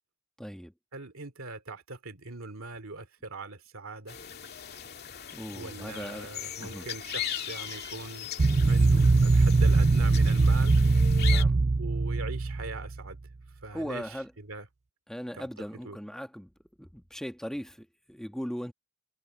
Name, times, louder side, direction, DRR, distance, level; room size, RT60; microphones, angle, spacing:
voice 1, 0.4-0.7 5.3-6.3 6.6-6.8 11.3-11.6 13.7-14.3 15.1-16.5 16.8-18.7, equal, 5° left, 1.4 m, -38 dB
voice 2, 0.9-4.2 5.5-8.3 8.6-10.8 11.8-13.2 13.6-14.7 15.3-16.0, right 3 dB, 70° right, 2.6 m, -41 dB
sound 1, 4.1-11.4, left 9 dB, 50° left, 2.4 m, -39 dB
sound 2, 8.4-13.1, right 3 dB, 30° right, 0.5 m, -22 dB
head